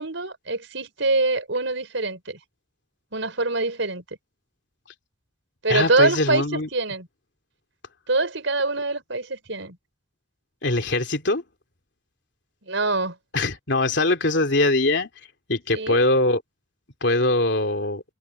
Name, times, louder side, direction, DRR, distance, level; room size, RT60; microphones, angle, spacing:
voice 1, 0.0-2.4 3.1-4.0 5.6-7.1 8.1-9.8 12.6-13.2 15.7-16.0, right 3 dB, 80° right, 4.7 m, -24 dB
voice 2, 5.7-6.7 10.6-11.4 13.3-15.1 15.5-16.4 17.0-18.0, left 2 dB, 65° left, 3.0 m, -22 dB
head